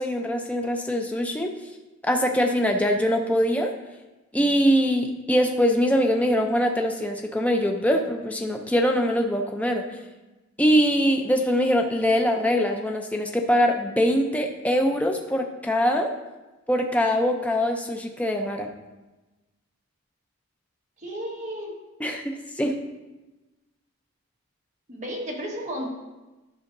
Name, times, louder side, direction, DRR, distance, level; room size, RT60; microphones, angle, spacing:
voice 1, 0.0-1.5 2.0-3.7 4.3-9.8 10.6-16.1 16.7-18.7 22.0-22.7, equal, 5° left, 3 dB, 0.5 m, -23 dB
voice 2, 21.0-21.7 24.9-25.9, equal, 30° right, -2 dB, 1.4 m, -33 dB
11.0 x 6.2 x 2.6 m, 1.1 s
head